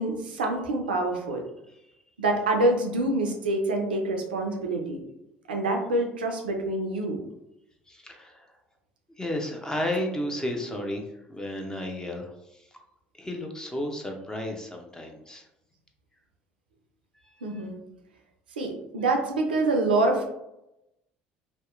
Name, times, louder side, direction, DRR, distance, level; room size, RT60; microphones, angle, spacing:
voice 1, 0.0-1.4 2.2-5.0 5.5-7.2 17.4-17.8 18.6-20.3, right 2 dB, 85° right, 2 dB, 0.4 m, -26 dB
voice 2, 7.9-8.5 9.2-11.0 11.3-12.7 13.2-15.5 17.2-17.6, left 1 dB, 10° left, 2 dB, 0.5 m, -33 dB
2.7 x 2.0 x 2.3 m, 0.87 s
hypercardioid pair, 60°, 5 cm